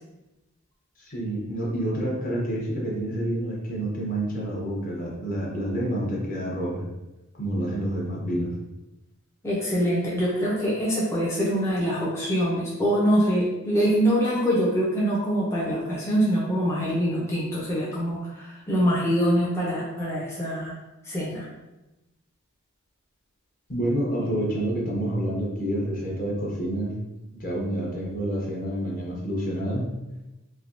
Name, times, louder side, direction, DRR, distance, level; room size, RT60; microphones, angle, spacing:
voice 1, 1.0-6.9 7.4-8.5 23.7-26.9 27.3-29.9, right 1 dB, 40° left, -2 dB, 0.8 m, -28 dB
voice 2, 9.4-20.8 21.0-21.5, equal, 10° left, -6 dB, 0.5 m, -24 dB
3.3 x 2.7 x 2.5 m, 0.99 s
head